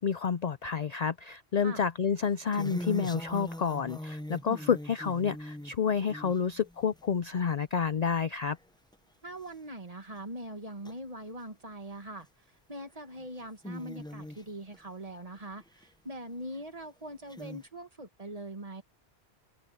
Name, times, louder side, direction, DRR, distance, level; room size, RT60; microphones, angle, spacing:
voice 1, 0.0-8.6, left 6 dB, 50° left, 0.5 m, -29 dB
sound 1, 2.2-7.3 7.7-8.1 8.6-8.7 8.9-9.0 9.5-9.6 10.8-10.9 11.9-12.2 12.8-12.9 13.2-14.8 15.3-15.9 16.5-16.6 17.3-17.7, left 1 dB, 5° left, 0.6 m, -41 dB
voice 2, 9.2-12.3 12.7-18.8, right 1 dB, 35° right, 2.0 m, -42 dB
open air
omnidirectional pair, 1.1 m